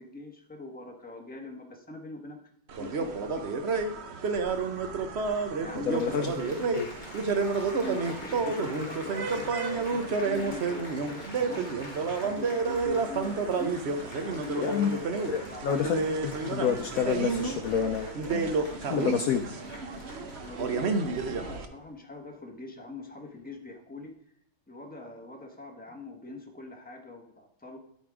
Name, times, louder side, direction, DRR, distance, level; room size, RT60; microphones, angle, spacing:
voice 1, 0.0-2.4 2.8-3.9 5.6-6.2 7.7-11.7 12.2-13.9 14.2-14.8 15.5-15.8 20.5-24.2 24.7-27.8, left 2 dB, 5° left, 1 dB, 1.0 m, -42 dB
sound 1, 2.7-21.7, right 4 dB, 65° right, 0.6 m, -30 dB
Applause, 5.6-21.5 22.3-22.6, left 2 dB, 25° left, 1.3 m, -47 dB
voice 2, 5.9-6.3 6.7-6.9 14.6-14.9 15.3-18.5 18.9-19.4, left 8 dB, 85° left, 7 dB, 0.7 m, -29 dB
13.0 x 4.4 x 4.9 m, 0.71 s
omnidirectional pair, 2.2 m